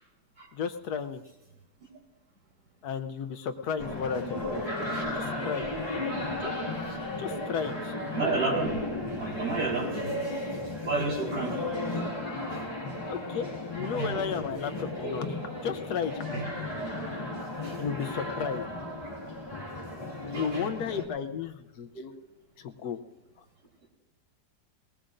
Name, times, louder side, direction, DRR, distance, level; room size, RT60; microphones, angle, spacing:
voice 1, 0.5-1.2 2.8-4.6 5.1-5.6 5.9-6.0 6.4-6.5 7.2-7.9 13.0-15.2 15.6-16.4 17.8-18.6 20.3-22.1 22.6-23.0, left 7 dB, 70° left, 8 dB, 1.2 m, -33 dB
sound 1, 3.8-21.1, left 2 dB, 20° left, 2.3 m, -34 dB
voice 2, 8.1-8.7 9.2-10.3 10.8-11.6 12.5-12.6 14.0-14.2 15.0-15.1 16.3-16.5 17.6-17.7 20.3-20.7, right 3 dB, 75° right, -4 dB, 4.9 m, -31 dB
20.0 x 19.0 x 2.6 m, 0.95 s
omnidirectional pair, 1.8 m